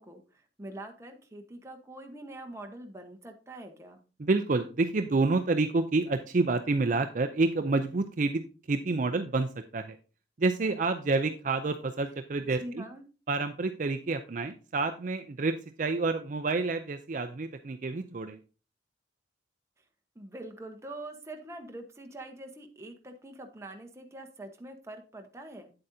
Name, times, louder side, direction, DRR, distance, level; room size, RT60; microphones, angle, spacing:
voice 1, 0.0-4.0 12.6-13.0 20.1-25.7, right 1 dB, 15° right, 4 dB, 1.1 m, -44 dB
voice 2, 4.2-10.0 10.4-12.8 13.3-18.4, right 3 dB, 45° right, 8 dB, 0.5 m, -28 dB
8.9 x 7.6 x 2.7 m, 0.34 s
head